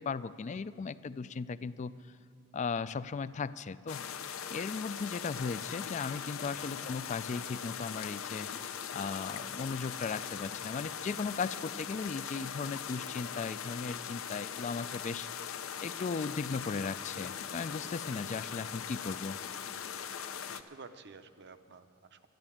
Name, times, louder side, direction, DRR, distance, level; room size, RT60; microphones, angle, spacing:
voice 1, 0.0-1.9 2.5-4.0 4.5-8.5 8.9-15.3 15.8-19.4, left 5 dB, 35° left, 16 dB, 0.3 m, -37 dB
sound 1, 3.9-20.6, left 8 dB, 75° left, 0.6 m, -40 dB
voice 2, 20.5-22.3, right 4 dB, 55° right, 10 dB, 0.7 m, -52 dB
12.0 x 10.5 x 8.6 m, 2.4 s
head